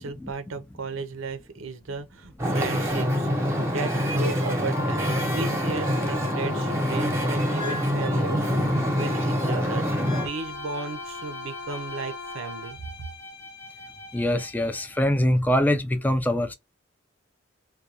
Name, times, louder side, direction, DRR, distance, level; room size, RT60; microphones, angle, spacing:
voice 1, 0.0-12.8, right 4 dB, 90° right, 0.5 m, -35 dB
Wind / Ocean, 2.4-10.3, equal, 15° right, 0.8 m, -25 dB
Wind instrument woodwind instrument, 4.7-12.8, left 4 dB, 90° left, 0.4 m, -39 dB
Bowed string instrument, 9.8-15.2, left 2 dB, 60° left, 1.0 m, -43 dB
voice 2, 14.1-16.5, left 1 dB, 10° left, 0.3 m, -23 dB
2.3 x 2.2 x 2.7 m
head